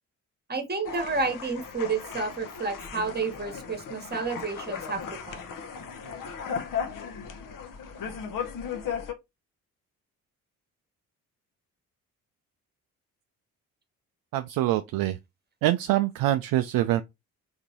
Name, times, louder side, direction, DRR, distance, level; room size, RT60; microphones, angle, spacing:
voice 1, 0.5-5.5, right 4 dB, 20° right, 1.3 m, -30 dB
sound 1, 0.8-9.1, left 6 dB, 50° left, 0.9 m, -36 dB
voice 2, 14.3-15.2 15.6-17.0, right 14 dB, 55° right, 0.5 m, -25 dB
3.7 x 3.5 x 3.0 m
figure-of-eight pair, 40°, 43 cm